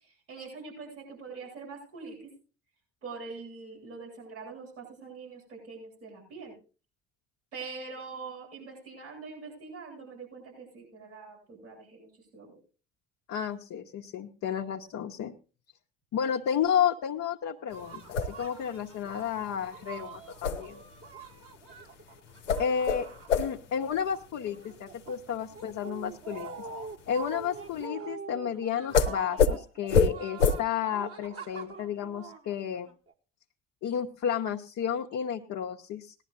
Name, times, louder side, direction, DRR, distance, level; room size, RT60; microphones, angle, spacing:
voice 1, 0.0-2.3 3.0-6.5 7.5-12.6, right 4 dB, 85° right, -7 dB, 7.3 m, -44 dB
voice 2, 13.3-15.3 16.1-20.8 22.6-23.1 23.4-26.6 27.1-32.9 33.8-36.1, left 8 dB, 50° left, 1 dB, 0.9 m, -32 dB
sound 1, 17.7-27.8 28.9-29.1 29.4-29.5 29.9-30.1 30.4-30.5, left 5 dB, 85° left, 0.8 m, -29 dB
sound 2, 17.7-23.9 24.2-33.1, right 5 dB, 40° right, 1.6 m, -45 dB
19.0 x 11.5 x 2.6 m, 0.35 s
figure-of-eight pair, 45°, 35 cm